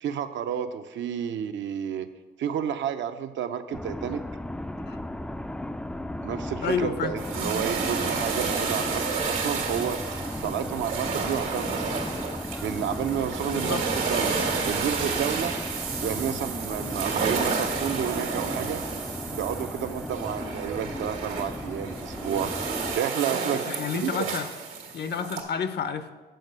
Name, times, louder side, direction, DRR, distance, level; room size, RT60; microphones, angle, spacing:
voice 1, 0.0-2.1 2.4-4.2 6.2-12.0 12.6-15.6 16.0-18.8 19.3-22.5 23.0-23.6 24.0-24.3, right 8 dB, 70° right, 9 dB, 0.6 m, -31 dB
sound 1, 3.7-23.0, left 1 dB, 5° left, 0.3 m, -36 dB
voice 2, 6.6-7.2 13.5-13.8 23.6-24.5 24.9-26.1, left 6 dB, 55° left, 11 dB, 0.6 m, -30 dB
sound 2, 7.2-25.4, right 5 dB, 85° right, 1.5 m, -31 dB
7.8 x 4.8 x 6.6 m, 1.2 s
cardioid pair, 90°, 20 cm